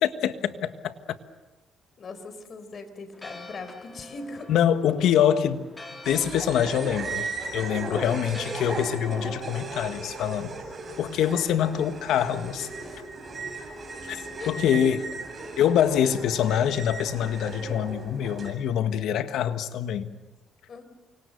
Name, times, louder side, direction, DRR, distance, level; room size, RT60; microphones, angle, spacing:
voice 1, 0.0-0.9 4.5-5.7 6.0-7.3 7.5-10.6 11.0-12.7 14.1-15.0 15.6-20.1, left 9 dB, 80° left, 1.5 m, -25 dB
voice 2, 2.0-4.5 12.8-13.0 14.4-15.0 20.7-20.8, left 3 dB, 50° left, 4.2 m, -40 dB
Church bell, 3.1-12.0, left 2 dB, 20° left, 3.8 m, -48 dB
sound 1, 6.0-18.5, right 3 dB, 35° right, 7.7 m, -36 dB
29.0 x 25.5 x 6.7 m
cardioid pair, 90°, 0 cm